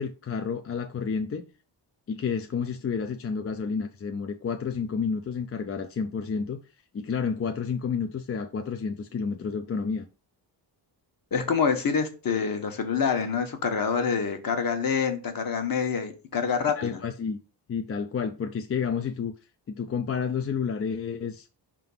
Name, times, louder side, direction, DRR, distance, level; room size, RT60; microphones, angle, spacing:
voice 1, 0.0-1.4 2.1-6.6 6.9-10.1 16.8-17.4 17.7-19.3 19.7-21.5, left 6 dB, 35° left, 0.4 m, -30 dB
voice 2, 11.3-17.0, left 6 dB, 50° left, 1.2 m, -26 dB
5.7 x 3.7 x 5.4 m
wide cardioid pair, 180°, 44 cm